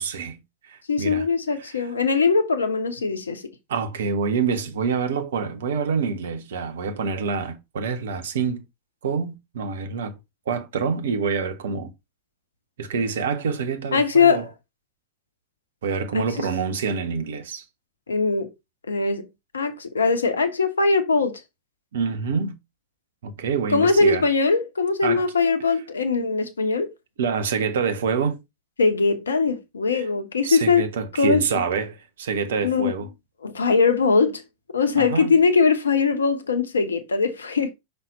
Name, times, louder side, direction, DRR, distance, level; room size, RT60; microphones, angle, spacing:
voice 1, 0.0-1.3 1.6-1.9 3.7-8.6 9.0-10.2 10.5-11.9 12.8-14.5 15.8-17.6 21.9-22.6 23.2-24.3 25.0-25.2 27.2-28.4 29.9-30.1 30.4-33.1 35.0-35.4, right 5 dB, 60° right, 1.0 m, -26 dB
voice 2, 0.9-3.4 13.9-14.4 16.1-16.2 18.1-18.5 18.9-19.3 19.5-21.4 23.7-26.9 28.8-30.8 31.2-31.4 32.6-32.9 33.4-34.4 34.7-37.7, left 4 dB, 70° left, 1.0 m, -21 dB
5.8 x 3.4 x 5.2 m
figure-of-eight pair, 90°, 0 cm